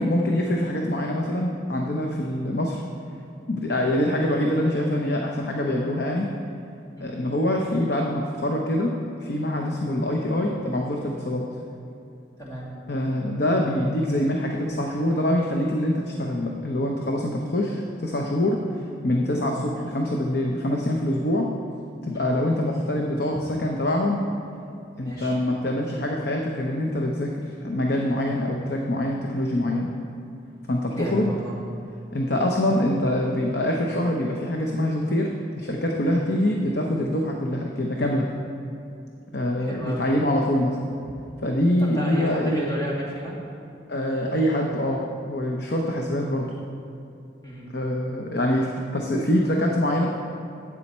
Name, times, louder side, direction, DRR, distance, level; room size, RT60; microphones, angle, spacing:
voice 1, 0.0-2.8 3.5-6.3 7.0-8.9 9.2-11.4 12.9-21.5 22.0-24.2 25.0-29.9 30.7-31.3 32.1-35.3 35.6-38.3 39.3-40.8 41.4-42.6 43.9-46.6 47.7-50.1, left 1 dB, 60° left, 1 dB, 0.8 m, -24 dB
voice 2, 12.4-12.7 22.1-22.3 23.3-23.4 25.0-25.4 30.9-31.6 36.1-36.3 39.6-40.1 41.8-43.4 47.4-47.7, equal, 15° left, -6 dB, 2.2 m, -33 dB
12.5 x 8.5 x 4.3 m, 2.7 s
head